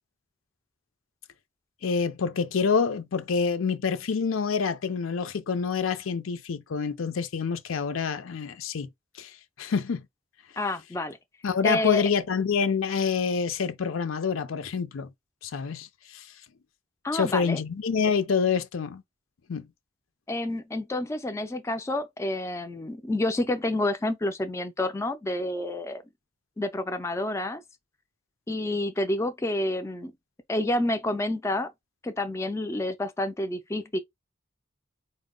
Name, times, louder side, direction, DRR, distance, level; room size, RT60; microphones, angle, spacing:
voice 1, 1.8-8.9 9.2-9.3 9.6-10.0 11.4-15.1 15.4-16.3 17.1-19.0 19.5-19.7, left 5 dB, 75° left, 0.5 m, -27 dB
voice 2, 10.6-11.2 11.6-12.0 17.0-17.6 20.3-26.0 26.6-27.6 28.5-30.1 30.5-31.7 32.0-34.0, left 1 dB, 15° left, 0.4 m, -29 dB
4.2 x 2.0 x 3.7 m
head